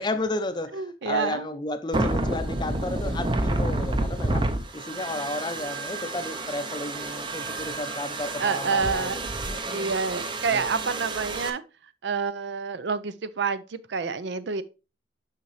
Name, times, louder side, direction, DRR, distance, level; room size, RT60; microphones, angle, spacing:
voice 1, 0.0-4.5 4.7-9.1 9.5-9.9 10.5-10.6, left 2 dB, 25° left, 0.5 m, -32 dB
voice 2, 0.7-1.5 8.4-9.3 9.7-11.6 12.0-14.6, right 5 dB, 70° right, 0.5 m, -28 dB
sound 1, 1.9-11.5, right 2 dB, 25° right, 0.6 m, -29 dB
6.6 x 5.7 x 3.1 m
head